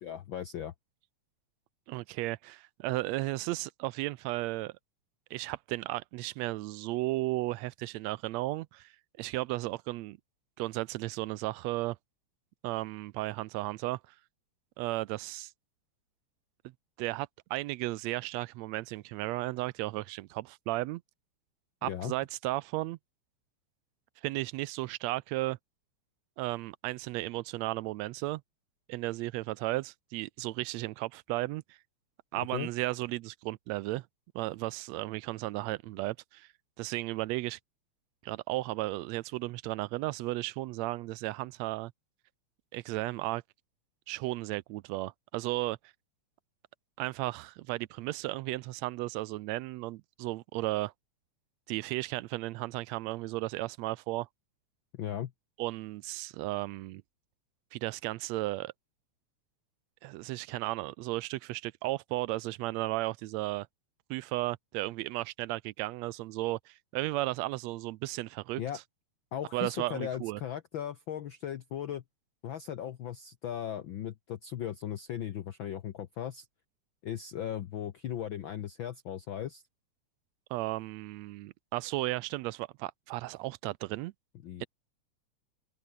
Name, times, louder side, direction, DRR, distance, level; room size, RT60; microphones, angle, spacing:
voice 1, 0.0-0.7 21.9-22.1 32.4-32.7 54.9-55.3 68.6-68.8 69.3-72.0 72.4-76.5 77.0-79.6 84.4-84.6, left 10 dB, 70° left, 1.2 m, -37 dB
voice 2, 1.9-4.7 5.3-8.9 9.2-10.2 10.6-12.0 12.6-14.0 14.8-15.5 17.0-21.0 21.8-23.0 24.2-25.6 26.4-28.4 28.9-31.8 32.3-34.1 34.3-36.5 36.8-37.6 38.2-41.9 42.7-43.4 44.1-45.8 47.0-50.9 51.7-54.3 55.6-57.0 57.7-58.7 60.0-63.7 64.1-68.6 69.5-70.4 80.5-84.1 84.6-84.7, right 19 dB, 80° right, 1.7 m, -34 dB
open air
omnidirectional pair, 3.4 m